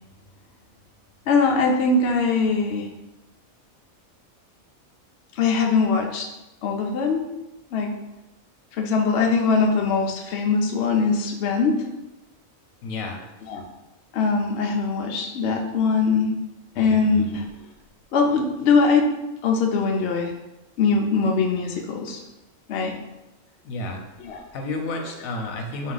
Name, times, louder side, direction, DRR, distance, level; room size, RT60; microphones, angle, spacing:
voice 1, 1.3-2.9 5.3-6.3 6.6-7.3 7.7-7.9 8.8-11.8 13.4-13.6 14.1-16.4 16.8-17.5 18.1-19.1 19.4-20.3 20.8-22.2 22.7-22.9 24.2-24.4, left 4 dB, 60° left, 2 dB, 0.7 m, -21 dB
voice 2, 12.8-13.2 16.8-17.3 23.6-24.0 24.5-25.9, left 2 dB, 80° left, 2 dB, 1.1 m, -31 dB
4.0 x 2.7 x 3.8 m, 0.97 s
omnidirectional pair, 1.4 m